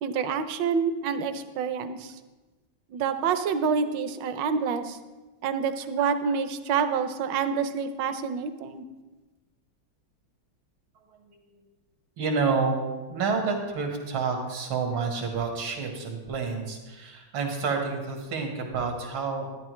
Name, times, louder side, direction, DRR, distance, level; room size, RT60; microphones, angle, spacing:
voice 1, 0.0-2.2 2.9-5.0 5.4-8.8, right 6 dB, 70° right, 10 dB, 1.3 m, -27 dB
voice 2, 12.2-19.5, right 4 dB, 90° right, 2 dB, 2.3 m, -29 dB
12.0 x 10.5 x 3.1 m, 1.2 s
omnidirectional pair, 2.2 m